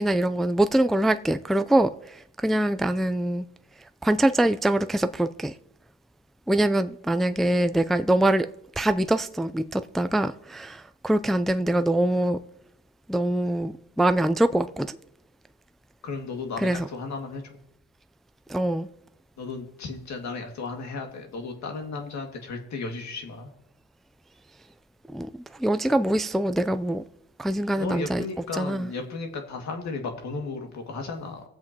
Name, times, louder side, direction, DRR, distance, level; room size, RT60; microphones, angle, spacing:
voice 1, 0.0-3.5 4.0-5.5 6.5-8.5 8.8-12.4 13.1-15.0 16.6-16.9 18.5-18.9 25.1-27.0 27.4-28.2 28.5-28.9, right 1 dB, ahead, 0.3 m, -24 dB
voice 2, 16.0-17.4 19.4-23.5 27.8-31.5, left 4 dB, 65° left, 2.0 m, -34 dB
20.0 x 7.7 x 2.9 m
cardioid pair, 90°, 30 cm